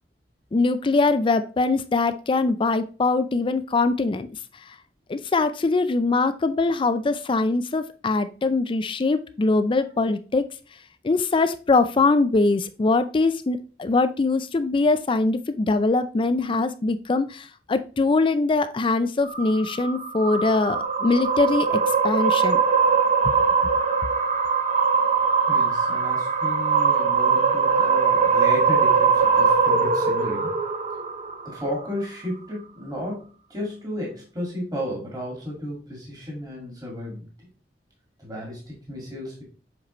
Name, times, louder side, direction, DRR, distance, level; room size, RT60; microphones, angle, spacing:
voice 1, 0.5-4.3 5.1-10.5 11.0-22.6 23.2-23.4, left 3 dB, 30° left, 11 dB, 0.4 m, -22 dB
sound 1, 19.2-31.7, right 5 dB, 40° right, 0.7 m, -21 dB
voice 2, 25.5-30.5 31.4-37.3 38.2-39.4, equal, 20° right, -2 dB, 2.0 m, -33 dB
7.3 x 4.6 x 3.0 m, 0.36 s
head